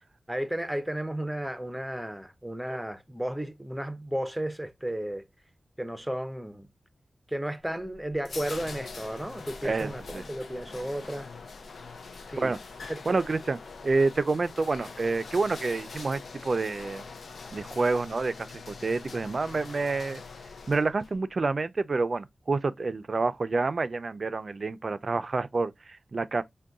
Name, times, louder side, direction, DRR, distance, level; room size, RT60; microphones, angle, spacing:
voice 1, 0.3-5.2 5.8-6.7 7.3-11.3 12.3-12.5 12.9-13.0, right 1 dB, 5° right, 0.6 m, -33 dB
sound 1, 7.6-21.2, left 4 dB, 85° left, 0.4 m, -43 dB
voice 2, 9.6-10.2 12.4-12.6 13.1-13.6 13.8-17.0 17.5-20.2 20.7-26.4, right 3 dB, 55° right, 0.4 m, -28 dB
3.8 x 2.2 x 3.5 m
wide cardioid pair, 75°, 0 cm